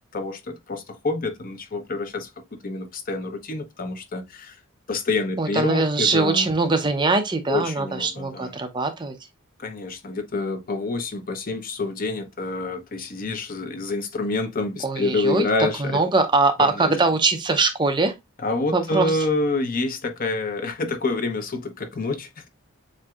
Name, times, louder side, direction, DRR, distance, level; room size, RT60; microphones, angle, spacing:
voice 1, 0.1-2.3 2.6-4.6 4.9-6.5 7.5-8.6 9.6-16.0 16.6-16.9 18.4-22.5, left 3 dB, 40° left, 0.7 m, -27 dB
voice 2, 5.4-9.2 14.8-15.5 15.8-18.1 18.7-19.1, right 3 dB, 20° right, 0.5 m, -22 dB
7.4 x 2.6 x 2.3 m
head